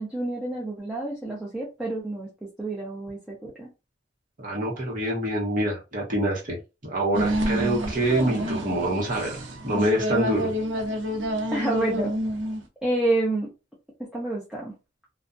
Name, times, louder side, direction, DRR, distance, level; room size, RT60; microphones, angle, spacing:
voice 1, 0.0-3.7 11.5-12.1 12.8-13.5 14.1-14.7, right 2 dB, 5° right, 0.5 m, -28 dB
voice 2, 4.4-6.6 6.8-9.4 9.6-10.5, right 1 dB, 45° right, 1.0 m, -26 dB
sound 1, 7.1-12.6, right 1 dB, 85° right, 0.5 m, -28 dB
2.5 x 2.2 x 2.5 m
head